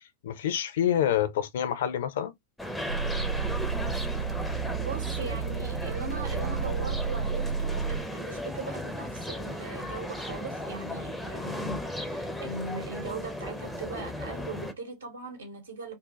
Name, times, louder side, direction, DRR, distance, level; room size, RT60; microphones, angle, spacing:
voice 1, 0.2-2.3, left 10 dB, 60° left, 0.4 m, -27 dB
sound 1, 2.6-14.7, left 1 dB, 5° left, 0.4 m, -36 dB
sound 2, 2.9-8.1, right 6 dB, 90° right, 0.5 m, -31 dB
voice 2, 4.6-16.0, right 3 dB, 70° right, 0.9 m, -39 dB
2.6 x 2.1 x 2.9 m
figure-of-eight pair, 90°, 0 cm